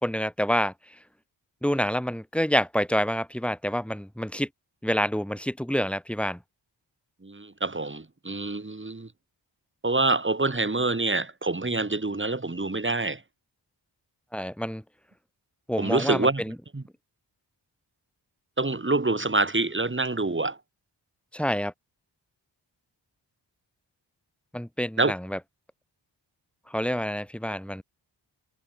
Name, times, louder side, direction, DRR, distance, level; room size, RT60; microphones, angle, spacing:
voice 1, 0.0-0.7 1.6-4.5 4.8-6.4 14.3-14.8 15.7-16.5 21.3-21.7 24.5-25.4 26.7-27.8, equal, 5° left, 4.0 m, -27 dB
voice 2, 7.2-9.1 9.8-13.2 15.8-16.4 16.7-16.8 18.6-20.6 25.0-25.1, right 3 dB, 25° right, 3.4 m, -26 dB
cardioid pair, 60°, 44 cm